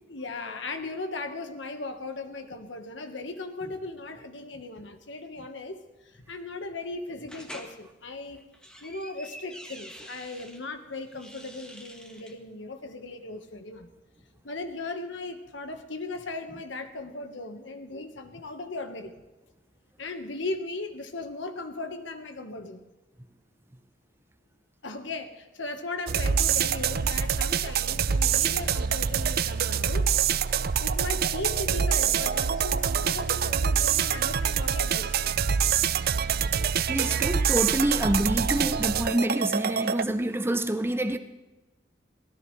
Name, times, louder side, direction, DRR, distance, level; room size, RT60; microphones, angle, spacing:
voice 1, 0.1-8.4 8.8-13.9 14.4-19.1 20.0-22.8 24.8-35.2, left 2 dB, 70° left, 7 dB, 1.4 m, -37 dB
sound 1, 7.3-7.7 8.4-10.6 11.1-12.4, equal, 5° left, 1.4 m, -46 dB
sound 2, 26.1-40.0, right 7 dB, 50° right, 0.5 m, -25 dB
voice 2, 36.9-41.2, right 1 dB, 10° right, 9 dB, 0.6 m, -27 dB
23.5 x 17.0 x 3.3 m, 1.1 s
head